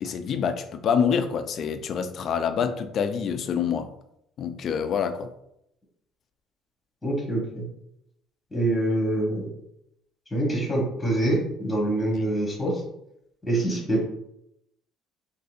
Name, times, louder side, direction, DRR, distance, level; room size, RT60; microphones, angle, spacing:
voice 1, 0.0-3.9 4.4-5.3, left 7 dB, 50° left, 8 dB, 0.4 m, -26 dB
voice 2, 7.0-7.6 8.5-9.5 10.3-12.8 13.5-14.0, right 1 dB, 10° left, -2 dB, 1.2 m, -25 dB
3.8 x 2.6 x 2.5 m, 0.80 s
cardioid pair, 105°, 0 cm